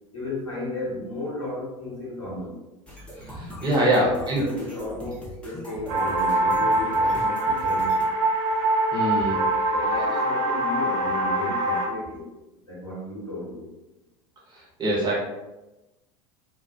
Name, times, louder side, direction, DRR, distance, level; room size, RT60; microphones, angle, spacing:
voice 1, 0.1-2.6 3.8-7.9 9.7-12.3 12.7-13.7, left 2 dB, 80° left, -6 dB, 1.0 m, -34 dB
sound 1, 2.9-8.0, equal, 5° left, 0.7 m, -40 dB
voice 2, 3.3-4.4 8.9-9.4 14.5-15.2, right 1 dB, 25° right, -4 dB, 0.9 m, -24 dB
sound 2, 5.9-11.9, right 2 dB, 55° right, 0.6 m, -23 dB
2.8 x 2.0 x 2.3 m, 1.0 s
figure-of-eight pair, 75°, 17 cm